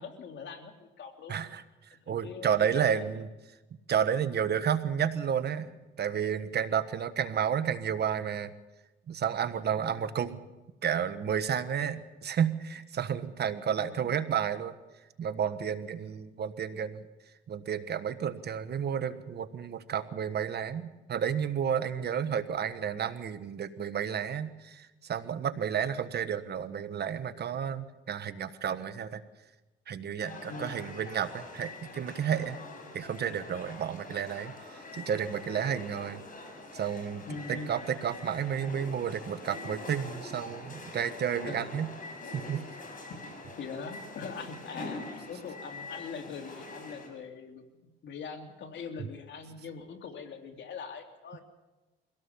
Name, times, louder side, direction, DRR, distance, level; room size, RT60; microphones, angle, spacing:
voice 1, 0.0-1.3 1.9-3.0 9.6-10.1 13.6-14.1 30.5-30.9 37.3-37.7 41.4-41.7 43.1-43.2 43.6-51.4, left 5 dB, 65° left, 5 dB, 2.9 m, -42 dB
voice 2, 1.3-1.6 2.1-3.3 3.9-8.5 9.1-10.4 10.8-14.8 15.2-17.1 17.5-29.2 29.9-32.6 32.9-36.2 36.7-41.9 42.3-42.6, right 8 dB, 55° right, 11 dB, 1.4 m, -31 dB
sound 1, 30.2-47.1, left 2 dB, 45° left, 6.0 m, -44 dB
24.0 x 17.0 x 7.1 m, 1.1 s
cardioid pair, 90°, 20 cm